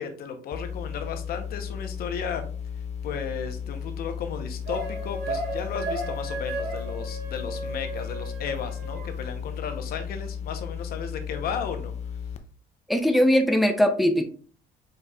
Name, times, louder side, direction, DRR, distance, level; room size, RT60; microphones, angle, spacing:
voice 1, 0.0-2.4 3.0-11.9, left 6 dB, 65° left, 7 dB, 0.9 m, -34 dB
sound 1, 0.5-12.4, left 7 dB, 40° left, 0.5 m, -35 dB
sound 2, 4.7-9.1, right 2 dB, 70° right, 1.0 m, -34 dB
voice 2, 12.9-14.2, equal, ahead, 6 dB, 0.6 m, -20 dB
4.9 x 4.6 x 2.3 m, 0.41 s
cardioid pair, 110°, 17 cm